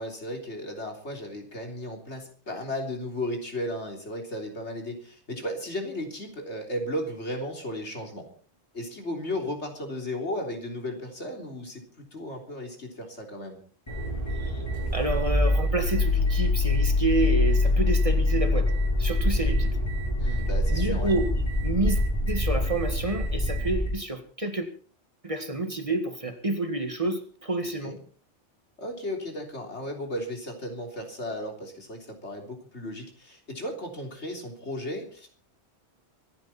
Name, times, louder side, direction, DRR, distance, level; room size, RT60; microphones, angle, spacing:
voice 1, 0.0-8.3 8.7-13.6 20.2-21.1 27.8-28.0 28.8-35.3, left 1 dB, 85° left, 3 dB, 3.8 m, -35 dB
sound 1, 13.9-23.9, left 2 dB, 25° left, 6.4 m, -25 dB
voice 2, 14.9-18.7 19.0-19.8 20.7-21.3 21.6-22.0 22.3-24.7 25.2-27.9, right 2 dB, 30° right, 7 dB, 2.0 m, -29 dB
24.5 x 11.0 x 4.3 m, 0.43 s
omnidirectional pair, 1.1 m